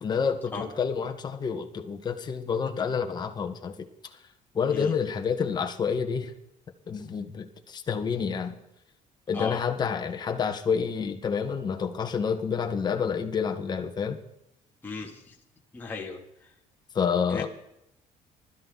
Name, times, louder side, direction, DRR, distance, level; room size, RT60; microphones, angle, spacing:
voice 1, 0.0-3.7 4.5-6.3 6.9-8.6 9.3-14.2 17.0-17.5, left 6 dB, 30° left, 5 dB, 1.7 m, -28 dB
voice 2, 14.8-15.3 15.7-16.5 17.3-17.5, left 4 dB, 15° left, -3 dB, 3.2 m, -36 dB
21.0 x 13.5 x 4.2 m, 0.81 s
cardioid pair, 135°, 13 cm